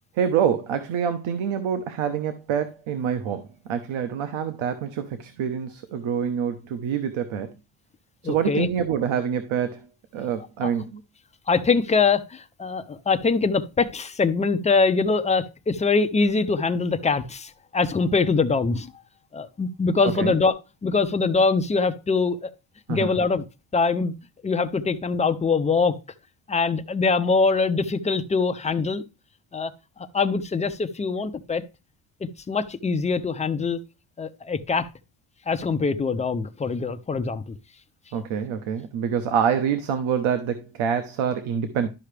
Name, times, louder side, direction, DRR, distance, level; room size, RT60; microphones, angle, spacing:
voice 1, 0.2-7.5 8.2-9.8 10.1-11.0 20.2-20.4 22.9-23.1 38.1-41.9, right 8 dB, 80° right, 1.0 m, -26 dB
voice 2, 8.2-8.7 10.6-10.7 11.5-18.9 19.3-20.5 20.8-22.5 22.9-23.4 23.7-24.1 24.4-26.0 26.5-29.0 29.5-29.7 30.1-31.6 32.5-33.8 34.2-34.9 35.5-37.5, left 4 dB, 15° left, 0.4 m, -23 dB
12.0 x 5.7 x 3.3 m
cardioid pair, 160°, 47 cm